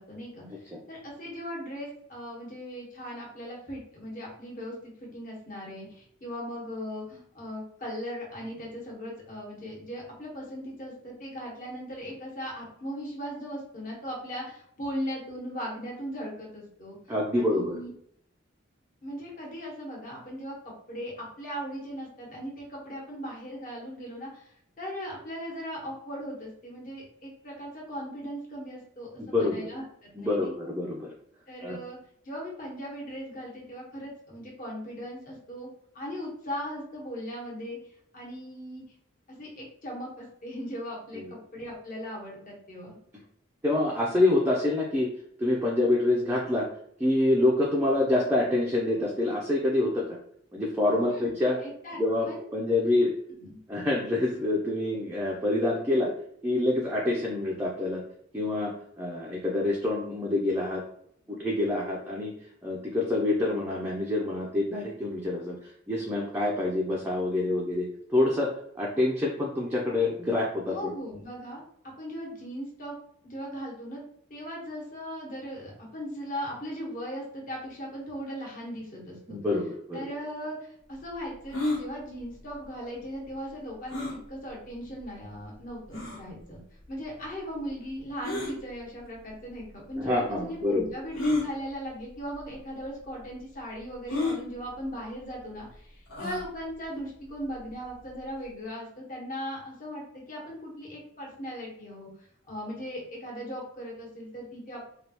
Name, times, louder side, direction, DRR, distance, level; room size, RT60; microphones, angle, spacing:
voice 1, 0.0-17.9 19.0-30.5 31.5-32.0 32.2-35.7 35.9-38.8 39.4-43.0 51.1-51.3 51.6-52.4 53.4-53.6 61.3-61.4 70.7-71.6 72.0-74.0 74.3-79.4 79.9-86.6 86.9-102.1 102.5-104.8, equal, 45° left, -3 dB, 1.1 m, -38 dB
voice 2, 17.1-17.7 29.2-29.7 30.1-31.1 31.6-31.8 41.1-41.3 43.6-45.1 45.4-46.7 47.0-50.2 50.5-51.6 52.0-53.1 53.7-56.1 56.4-58.0 58.3-60.8 61.3-62.3 62.6-68.5 68.8-70.9 79.3-80.1 90.0-90.8, left 2 dB, 10° right, -3 dB, 0.4 m, -26 dB
sound 1, 81.5-81.8 83.9-84.2 85.0-85.1 85.9-86.2 88.2-88.5 89.6-89.7 91.1-91.5 92.4-92.5 92.8-92.9 94.1-94.4 96.1-96.5, left 2 dB, 90° left, 1.3 m, -29 dB
3.2 x 2.3 x 2.9 m, 0.68 s
head